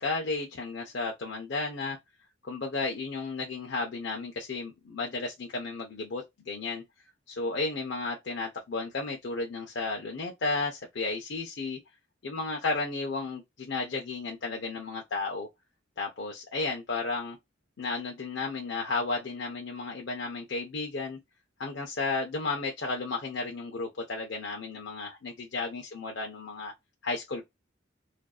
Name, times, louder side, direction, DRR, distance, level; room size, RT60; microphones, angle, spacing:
voice 1, 0.0-2.0 2.5-6.8 7.3-11.8 12.2-15.5 16.0-17.4 17.8-21.2 21.6-26.7 27.0-27.5, left 3 dB, 60° left, 0.6 m, -33 dB
2.5 x 2.3 x 2.3 m
head